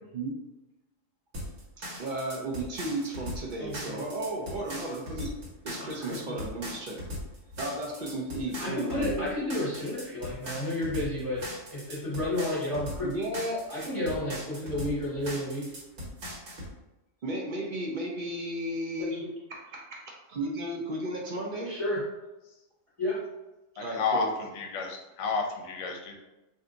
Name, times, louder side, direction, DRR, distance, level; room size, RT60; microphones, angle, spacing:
sound 1, 1.3-16.7, equal, 70° right, 1.3 m, -39 dB
voice 1, 1.8-5.3 5.6-7.0 7.6-9.3 13.0-13.6 17.2-21.8 23.7-24.3, right 1 dB, 55° right, -2 dB, 0.6 m, -34 dB
voice 2, 3.6-4.0 5.8-6.4 8.6-11.4 11.7-13.1 13.7-15.7 19.0-19.2 21.6-22.1 23.0-23.2, left 1 dB, 25° left, -8 dB, 1.0 m, -32 dB
voice 3, 23.8-26.1, left 4 dB, 75° left, 2 dB, 0.9 m, -31 dB
2.7 x 2.2 x 3.7 m, 1.0 s
omnidirectional pair, 1.3 m